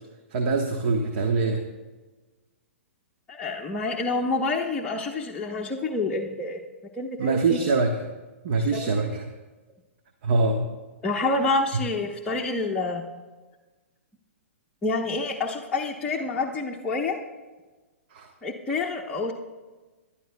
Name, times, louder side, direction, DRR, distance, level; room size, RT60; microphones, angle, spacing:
voice 1, 0.3-1.6 7.2-8.0 8.4-9.2 10.2-10.7 18.1-18.3, right 3 dB, 50° right, 4 dB, 1.2 m, -24 dB
voice 2, 3.3-6.6 7.0-7.6 8.6-9.1 11.0-13.0 14.8-17.2 18.4-19.3, left 3 dB, 10° left, -3 dB, 1.0 m, -28 dB
24.5 x 11.5 x 2.3 m, 1.2 s
figure-of-eight pair, 115°, 7 cm